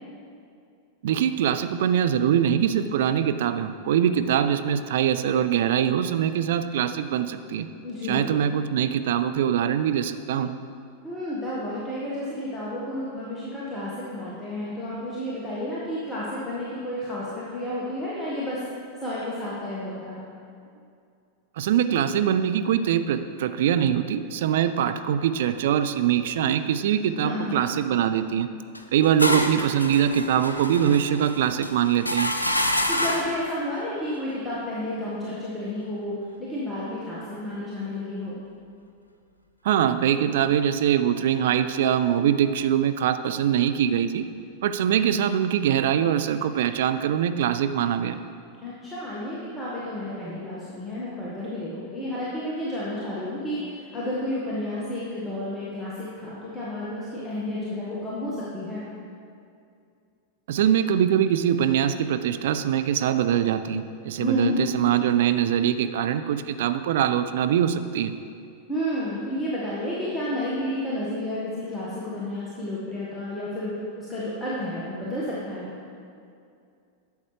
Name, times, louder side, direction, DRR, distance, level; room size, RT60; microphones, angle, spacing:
voice 1, 1.0-7.7 8.1-10.5 21.6-28.5 28.9-32.3 39.6-44.3 44.6-48.2 60.5-68.1, right 9 dB, 55° right, 10 dB, 0.3 m, -23 dB
voice 2, 7.8-8.3 11.0-18.6 19.0-20.2 27.2-27.6 32.9-38.4 48.6-58.8 64.2-64.6 68.7-75.7, left 1 dB, 10° left, -8 dB, 1.5 m, -31 dB
sound 1, 28.7-33.4, left 1 dB, 85° left, 0.5 m, -27 dB
11.5 x 7.1 x 3.3 m, 2.4 s
figure-of-eight pair, 90°, 0 cm